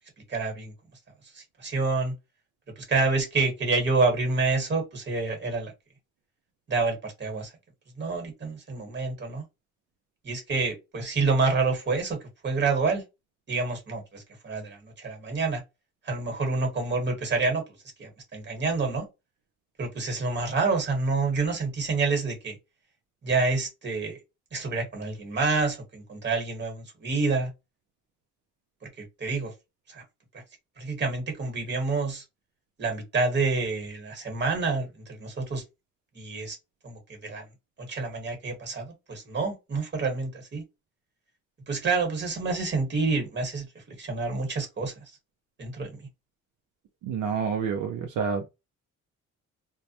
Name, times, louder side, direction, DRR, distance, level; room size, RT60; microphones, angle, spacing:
voice 1, 0.3-0.7 1.3-2.1 2.9-5.7 6.7-7.5 8.0-9.4 10.2-13.0 13.5-15.6 16.0-17.6 18.0-19.1 19.8-22.6 23.2-24.2 24.5-27.5 28.8-29.5 29.9-30.0 30.8-32.2 32.8-35.6 36.1-36.6 36.8-37.5 37.8-40.6 41.7-44.9 45.6-46.0, right 3 dB, 35° right, 1.3 m, -28 dB
voice 2, 47.0-48.5, right 6 dB, 80° right, 0.5 m, -28 dB
2.2 x 2.0 x 2.7 m
cardioid pair, 90°, 30 cm